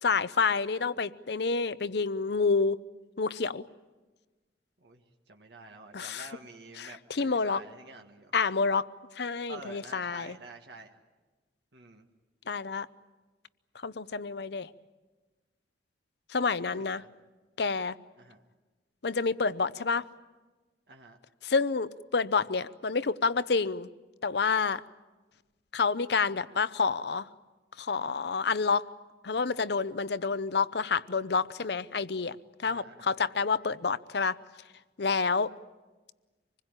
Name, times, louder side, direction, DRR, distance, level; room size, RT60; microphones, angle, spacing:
voice 1, 0.0-2.8 3.2-3.7 5.9-6.3 6.8-7.6 8.3-8.9 9.2-10.4 12.5-12.9 13.8-14.7 16.3-17.0 17.6-17.9 19.0-20.0 21.4-23.9 24.2-24.8 25.7-27.3 27.8-28.9 29.2-32.4 32.6-34.4 35.0-35.5, left 4 dB, 70° left, 16 dB, 0.7 m, -28 dB
voice 2, 5.3-8.3 9.5-10.9 11.7-12.1 14.5-14.6 16.7-17.1 18.2-18.4 20.9-21.2 32.6-33.3, right 3 dB, 70° right, 3 dB, 1.7 m, -49 dB
26.0 x 21.0 x 9.0 m, 1.2 s
head